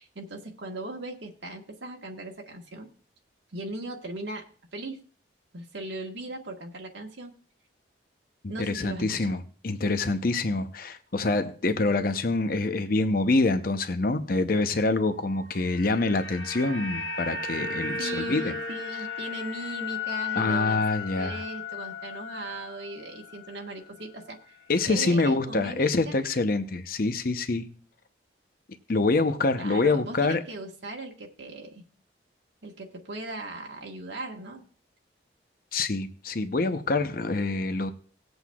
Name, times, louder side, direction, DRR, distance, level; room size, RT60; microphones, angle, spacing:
voice 1, 0.0-2.9 3.5-5.0 5.5-7.3 8.5-9.3 18.0-20.8 21.2-26.2 29.6-31.8 32.6-34.6, right 2 dB, 80° right, 0 dB, 1.4 m, -38 dB
voice 2, 8.6-18.5 20.4-21.4 24.7-27.7 28.9-30.4 35.7-37.9, left 3 dB, 50° left, 9 dB, 0.7 m, -26 dB
sound 1, 15.4-23.7 24.0-24.2, left 5 dB, 75° left, 1.1 m, -35 dB
19.0 x 7.9 x 2.3 m, 0.42 s
head